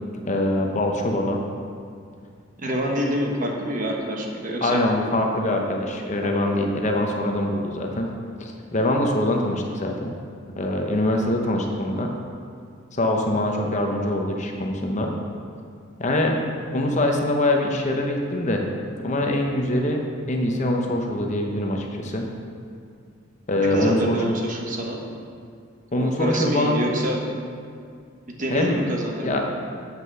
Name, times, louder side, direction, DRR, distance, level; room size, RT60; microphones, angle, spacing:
voice 1, 0.3-1.4 4.6-8.1 8.4-10.1 10.6-12.1 12.9-15.1 16.0-16.4 16.7-18.6 19.0-20.0 20.3-22.3 23.5-24.4 25.9-26.9 28.5-28.8 29.2-29.4, left 1 dB, 35° left, 2 dB, 0.8 m, -23 dB
voice 2, 2.6-4.8 6.2-6.3 23.6-25.0 25.9-27.2 28.4-29.4, right 1 dB, 40° right, 0 dB, 1.2 m, -26 dB
7.7 x 5.9 x 6.8 m, 2.3 s
head